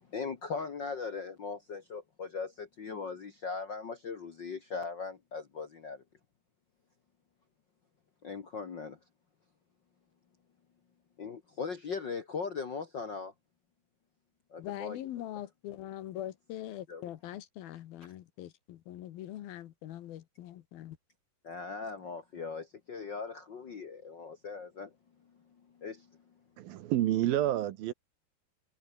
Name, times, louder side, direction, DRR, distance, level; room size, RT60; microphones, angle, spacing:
voice 1, 0.0-6.0 8.2-9.0 11.2-13.3 14.5-15.0 16.9-17.1 21.4-24.9 25.8-26.1, left 5 dB, 90° left, 0.9 m, -39 dB
voice 2, 14.6-21.0, left 12 dB, 70° left, 2.9 m, -42 dB
voice 3, 26.6-27.9, right 13 dB, 70° right, 2.7 m, -29 dB
omnidirectional pair, 4.8 m